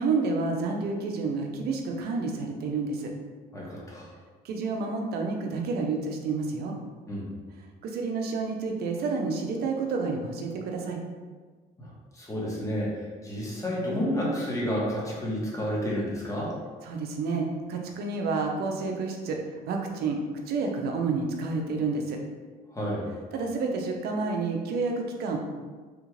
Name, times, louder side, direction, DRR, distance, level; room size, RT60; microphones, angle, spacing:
voice 1, 0.0-3.1 4.4-6.8 7.8-11.0 16.8-19.4 19.7-20.2 20.5-22.2 23.3-25.4, right 4 dB, 70° right, 2 dB, 0.6 m, -29 dB
voice 2, 3.5-4.1 7.1-7.3 11.8-16.5 22.7-23.1, equal, 20° left, -5 dB, 1.1 m, -30 dB
3.5 x 2.4 x 3.1 m, 1.4 s
cardioid pair, 110°, 17 cm